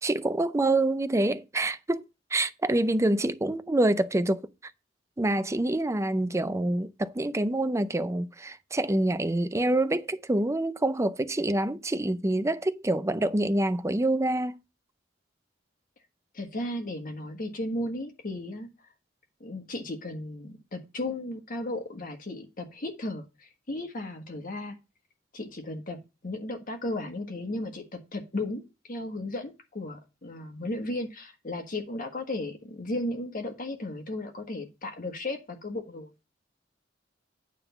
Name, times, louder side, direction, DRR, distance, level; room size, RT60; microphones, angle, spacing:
voice 1, 0.0-2.0 2.3-4.4 5.2-14.6, right 1 dB, 15° right, 0.5 m, -26 dB
voice 2, 16.3-18.7 19.4-24.8 25.3-26.0 26.2-36.1, left 1 dB, 45° left, 1.4 m, -35 dB
9.2 x 3.6 x 6.9 m
head